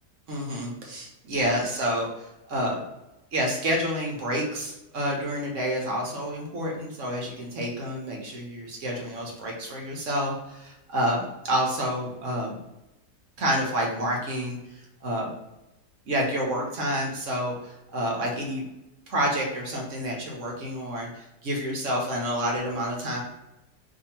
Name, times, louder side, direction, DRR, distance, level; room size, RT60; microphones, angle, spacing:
voice 1, 0.3-2.8 3.3-12.6 13.4-15.3 16.1-18.6 19.1-23.2, equal, 55° right, -1 dB, 1.0 m, -29 dB
2.7 x 2.6 x 4.2 m, 0.95 s
omnidirectional pair, 1.7 m